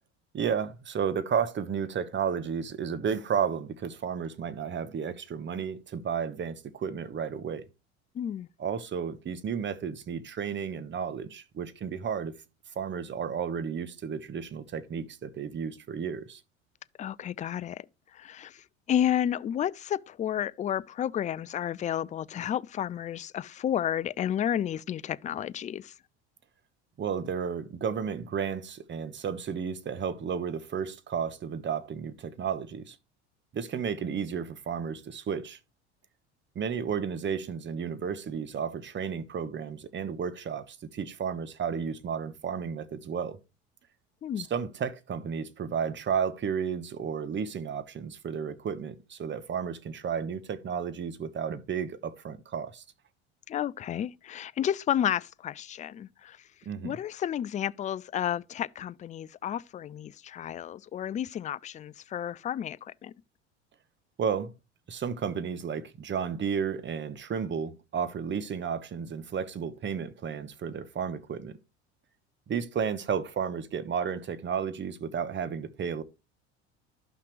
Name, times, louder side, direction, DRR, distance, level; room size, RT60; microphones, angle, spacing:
voice 1, 0.3-7.7 8.6-12.3 12.7-16.4 27.0-33.0 33.5-35.6 36.5-43.4 44.4-52.8 56.6-57.0 64.2-64.5 64.9-71.6 72.5-76.0, right 7 dB, 35° right, 1.1 m, -32 dB
voice 2, 8.1-8.5 17.0-17.8 18.1-25.9 44.2-44.5 53.5-56.4 56.8-63.1, left 10 dB, 20° left, 0.4 m, -31 dB
12.0 x 5.8 x 3.1 m
hypercardioid pair, 75°, 34 cm